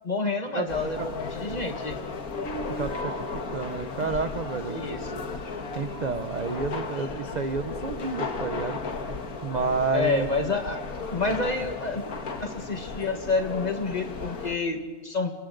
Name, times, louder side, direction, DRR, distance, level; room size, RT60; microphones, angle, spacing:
voice 1, 0.0-2.0 4.7-5.2 9.9-10.8 11.1-12.0 12.4-15.3, left 3 dB, 25° left, 4 dB, 1.8 m, -28 dB
sound 1, 0.7-14.6, left 3 dB, 70° left, 2.0 m, -35 dB
voice 2, 2.8-5.0 5.7-8.8 9.4-10.3, right 4 dB, 45° right, 8 dB, 0.6 m, -30 dB
29.0 x 26.5 x 3.9 m, 1.5 s
omnidirectional pair, 1.6 m